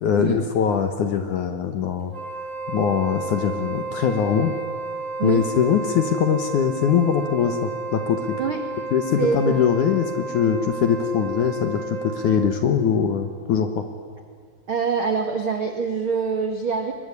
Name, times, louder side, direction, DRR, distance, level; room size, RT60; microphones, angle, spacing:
voice 1, 0.0-2.1 2.7-4.5 5.2-8.4 8.9-13.8, left 7 dB, 65° left, 7 dB, 2.1 m, -22 dB
Wind instrument woodwind instrument, 2.1-12.6, right 3 dB, 25° right, 2.2 m, -32 dB
voice 2, 9.2-9.6 14.7-16.9, right 5 dB, 70° right, 5 dB, 1.2 m, -24 dB
23.0 x 22.0 x 9.9 m, 2.1 s
omnidirectional pair, 4.9 m